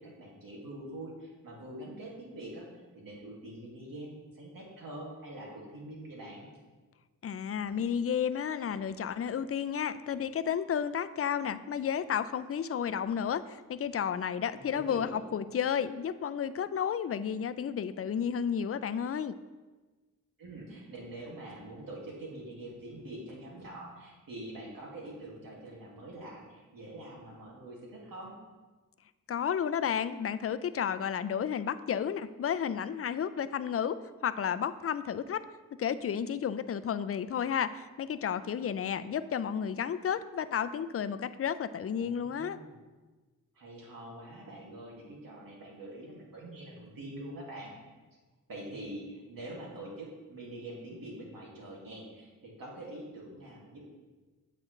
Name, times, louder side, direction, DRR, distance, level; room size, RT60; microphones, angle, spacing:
voice 1, 0.0-2.7 2.9-6.5 14.6-15.1 20.4-28.4 42.0-42.8 43.5-47.8 48.5-53.8, right 1 dB, 85° right, -3 dB, 2.2 m, -45 dB
voice 2, 7.2-19.3 29.3-35.4 35.7-42.6, left 8 dB, 45° left, 14 dB, 0.4 m, -32 dB
8.8 x 7.5 x 3.2 m, 1.3 s
wide cardioid pair, 70°, 33 cm